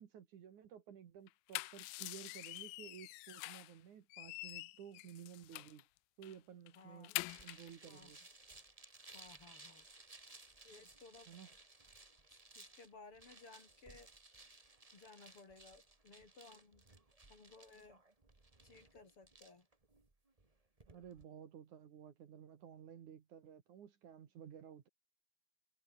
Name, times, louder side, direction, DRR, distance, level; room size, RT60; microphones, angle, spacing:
voice 1, 0.0-5.9 6.2-7.1 7.4-8.2 11.3-11.5 20.9-24.9, right 9 dB, 60° right, 3.1 m, -54 dB
sound 1, 1.3-3.8 4.1-5.8 6.2-6.4 6.7-7.7, left 23 dB, 90° left, 2.4 m, -46 dB
voice 2, 6.8-7.2 7.9-8.2 9.1-9.9 10.6-11.3 12.3-14.1 14.9-16.8 17.3-18.0 18.6-19.7, left 3 dB, 40° left, 4.4 m, -59 dB
sound 2, 7.3-21.2, right 2 dB, 20° right, 0.9 m, -60 dB
omnidirectional pair, 4.1 m